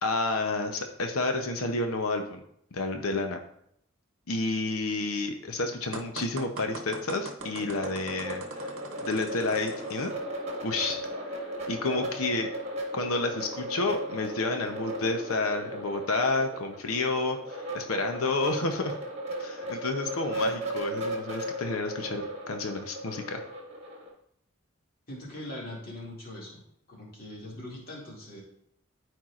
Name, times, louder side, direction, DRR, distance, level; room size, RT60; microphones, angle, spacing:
voice 1, 0.0-2.4 2.7-3.4 4.3-10.1 10.6-11.0 11.3-12.5 12.9-18.9 19.4-23.4, left 3 dB, 85° left, 5 dB, 0.8 m, -30 dB
sound 1, 5.9-10.1, right 3 dB, 75° right, 0.8 m, -42 dB
sound 2, 7.4-24.1, right 1 dB, 30° right, 1.5 m, -36 dB
voice 2, 25.1-26.6 26.9-28.4, left 1 dB, 45° left, -4 dB, 2.3 m, -41 dB
13.0 x 4.5 x 2.5 m, 0.72 s
head